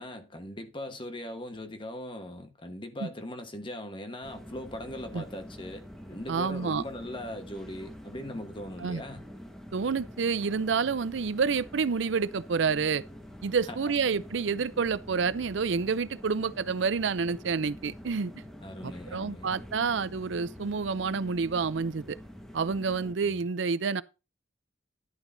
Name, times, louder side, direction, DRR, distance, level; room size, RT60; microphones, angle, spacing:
voice 1, 0.0-9.2 13.7-13.8 18.6-19.5 23.2-23.4, left 1 dB, 25° left, 1.2 m, -40 dB
sound 1, 4.2-23.1, equal, ahead, 1.3 m, -46 dB
voice 2, 6.3-6.8 8.8-9.0 9.7-13.0 13.4-18.3 18.8-22.2 22.5-24.0, right 5 dB, 70° right, 0.5 m, -28 dB
11.0 x 9.0 x 2.7 m
head